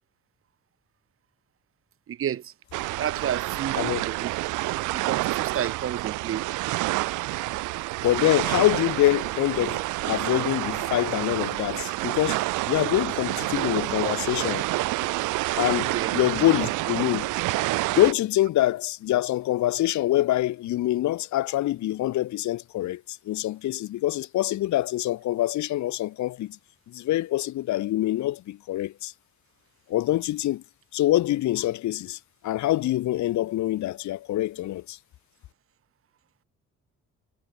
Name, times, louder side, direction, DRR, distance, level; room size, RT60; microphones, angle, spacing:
voice 1, 2.1-2.5 3.0-4.3 4.9-6.4 15.9-16.2, right 10 dB, 45° right, 0.9 m, -31 dB
sound 1, 2.7-18.1, right 20 dB, 90° right, 0.6 m, -28 dB
voice 2, 8.0-14.7 15.6-17.3 17.9-26.6 26.9-29.1 29.9-30.6 30.9-35.0, left 14 dB, 70° left, 0.8 m, -25 dB
cardioid pair, 90°, 30 cm